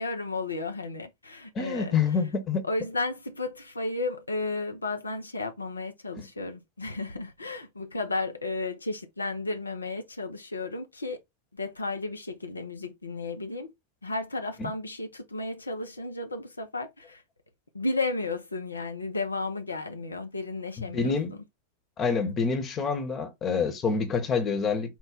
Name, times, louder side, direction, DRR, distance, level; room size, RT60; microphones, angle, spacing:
voice 1, 0.0-2.0 2.6-11.2 11.5-13.7 14.0-17.2 17.7-21.2, left 3 dB, 80° left, 0.5 m, -33 dB
voice 2, 1.5-2.6 6.1-6.3 14.6-14.7 20.8-21.3 22.0-25.0, left 5 dB, 25° left, 1.0 m, -27 dB
4.5 x 2.1 x 3.8 m
figure-of-eight pair, 90°, 0 cm